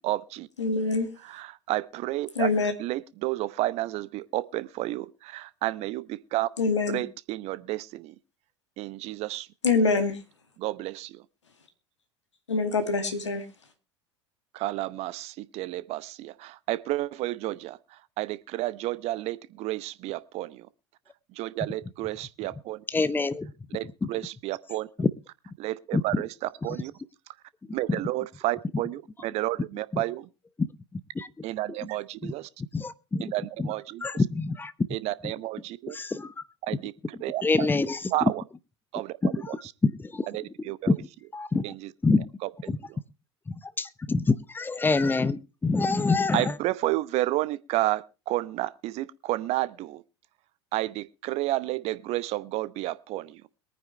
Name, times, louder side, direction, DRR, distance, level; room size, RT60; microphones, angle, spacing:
voice 1, 0.0-0.5 1.2-2.5 2.8-6.5 6.9-8.1 8.8-9.5 10.6-11.2 14.5-20.7 21.3-22.8 23.7-24.9 25.6-26.3 26.6-26.9 27.7-30.3 31.4-32.5 33.2-34.0 34.9-36.0 36.6-36.9 37.2-37.7 38.1-38.4 38.9-39.2 39.5-39.6 40.3-40.9 41.6-41.9 42.4-42.5 42.9-43.0 46.3-50.0 50.7-53.4, right 17 dB, 45° right, 0.8 m, -31 dB
voice 2, 0.6-1.1 2.4-2.7 6.6-7.0 9.6-10.2 12.5-13.4, left 3 dB, 80° left, 2.2 m, -24 dB
voice 3, 22.9-23.5 24.0-24.1 25.0-25.1 25.9-26.2 27.9-28.0 29.9-30.0 30.9-31.4 32.2-32.3 32.7-33.3 33.6-33.7 34.0-34.9 35.2-35.3 35.9-36.4 37.4-38.3 39.2-40.3 40.9-41.1 41.3-41.6 42.0-42.3 42.7-42.8 43.5-46.6, left 3 dB, 15° left, 0.9 m, -26 dB
22.5 x 9.6 x 3.2 m
figure-of-eight pair, 75°, 15 cm